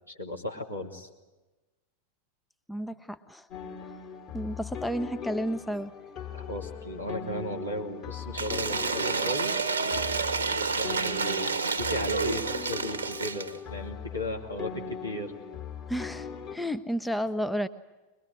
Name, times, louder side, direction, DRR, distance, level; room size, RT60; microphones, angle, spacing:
voice 1, 0.1-1.1 6.3-10.3 10.6-15.4, left 1 dB, 80° left, 0 dB, 2.9 m, -36 dB
voice 2, 2.7-3.5 4.3-5.9 15.9-17.7, equal, 5° left, 11 dB, 0.7 m, -32 dB
sound 1, 3.5-16.6, left 7 dB, 35° left, 2.8 m, -40 dB
Cheering / Applause / Crowd, 8.3-13.6, right 5 dB, 70° right, 1.1 m, -29 dB
22.5 x 22.0 x 9.7 m, 1.1 s
figure-of-eight pair, 90°, 0 cm